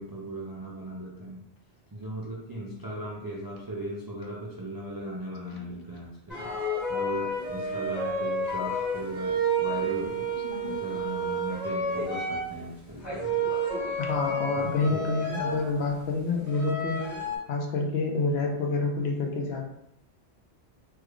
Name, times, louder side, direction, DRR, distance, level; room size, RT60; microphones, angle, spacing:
voice 1, 0.0-1.4 1.9-6.5 6.9-10.4 10.6-13.5 14.5-15.1, right 1 dB, 40° right, -4 dB, 0.3 m, -38 dB
sound 1, 6.3-12.5 13.0-15.9 16.5-17.4, right 1 dB, 45° left, 1.7 m, -30 dB
voice 2, 10.4-10.8 14.0-17.0 17.5-19.6, left 3 dB, 75° left, 1 dB, 0.9 m, -28 dB
3.2 x 3.2 x 2.3 m, 0.76 s
omnidirectional pair, 1.1 m